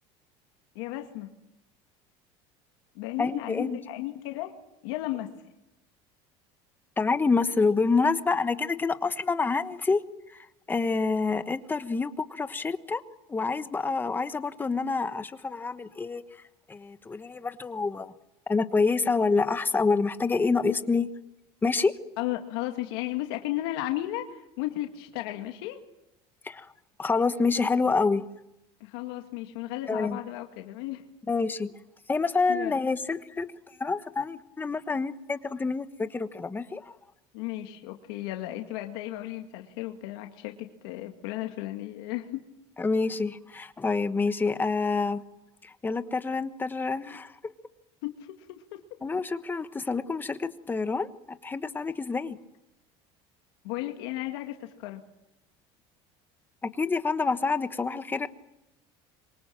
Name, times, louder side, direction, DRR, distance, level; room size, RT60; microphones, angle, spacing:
voice 1, 0.8-1.3 2.9-4.5 4.8-5.3 22.2-25.8 28.8-31.0 32.5-32.8 37.3-42.4 48.0-48.8 53.6-55.0, left 15 dB, 85° left, 4 dB, 2.1 m, -34 dB
voice 2, 3.2-3.8 7.0-13.0 13.3-16.4 16.7-18.1 18.5-21.1 21.6-22.0 26.4-26.7 27.0-28.2 29.9-30.2 31.3-31.7 32.1-37.0 42.8-45.2 45.6-47.4 49.0-52.4 56.8-58.3, left 4 dB, 15° left, 11 dB, 1.2 m, -27 dB
26.5 x 24.0 x 7.5 m, 0.89 s
cardioid pair, 140°, 13 cm